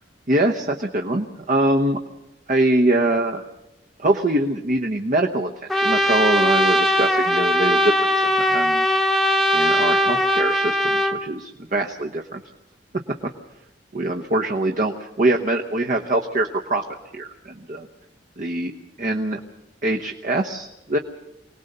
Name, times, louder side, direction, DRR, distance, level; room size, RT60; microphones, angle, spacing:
voice 1, 0.3-2.0 2.5-3.4 4.0-8.9 9.5-12.4 13.9-14.9 15.2-16.8 17.1-17.9 18.4-18.7 19.0-19.4 19.8-21.0, right 1 dB, 50° right, 3 dB, 1.0 m, -23 dB
Trumpet, 5.7-11.2, equal, ahead, 1.0 m, -20 dB
24.5 x 18.5 x 6.7 m, 0.94 s
head